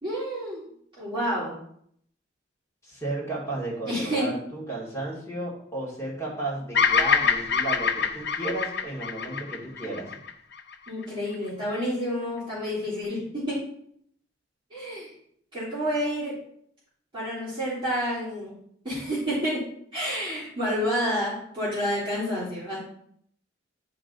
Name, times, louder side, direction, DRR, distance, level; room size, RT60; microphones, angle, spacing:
voice 1, 0.0-0.6 1.0-1.5 3.9-4.3 10.9-13.6 14.7-15.1 15.5-16.3 17.1-18.6 18.8-19.6 19.9-22.8, equal, 25° right, -10 dB, 3.0 m, -29 dB
voice 2, 2.8-10.1, right 2 dB, 15° left, -5 dB, 2.3 m, -33 dB
Bird vocalization bird call bird song, 6.7-11.0, left 6 dB, 60° left, 0.6 m, -25 dB
10.5 x 3.8 x 3.9 m, 0.68 s
head